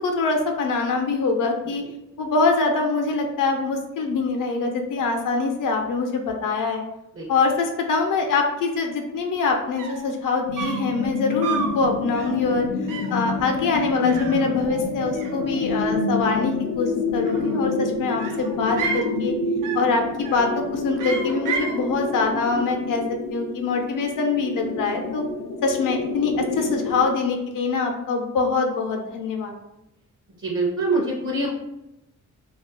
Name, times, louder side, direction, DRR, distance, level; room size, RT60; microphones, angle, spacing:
voice 1, 0.0-1.8 2.2-6.8 7.3-12.7 13.1-19.3 19.7-23.0 23.3-25.2 25.6-29.6, left 4 dB, 80° left, 3 dB, 0.6 m, -24 dB
sound 1, 9.5-9.6 9.8-10.1 10.6-10.9 11.4-11.8 12.1-12.4 12.9-13.2 14.0-14.9 15.1-15.9 17.1-17.7 18.2-19.1 19.6-19.9 20.2-20.6 21.0-21.8, right 5 dB, 85° right, 0.5 m, -32 dB
sound 2, 10.5-27.1, left 3 dB, 45° left, 0.4 m, -28 dB
voice 2, 30.4-31.5, right 2 dB, 40° right, -2 dB, 0.6 m, -24 dB
2.4 x 2.3 x 3.7 m, 0.89 s
wide cardioid pair, 135°, 31 cm